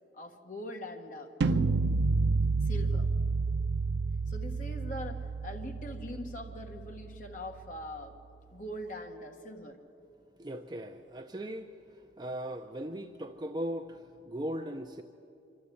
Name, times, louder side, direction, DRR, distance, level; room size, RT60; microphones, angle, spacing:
voice 1, 0.1-1.8 2.6-3.1 4.3-8.2 8.5-9.8, left 1 dB, 45° left, 3 dB, 1.4 m, -41 dB
sound 1, 1.4-7.4, right 4 dB, 80° right, 0.4 m, -30 dB
voice 2, 10.4-11.7 12.2-15.0, right 1 dB, 25° right, 5 dB, 0.6 m, -38 dB
25.5 x 12.5 x 8.5 m, 2.7 s
head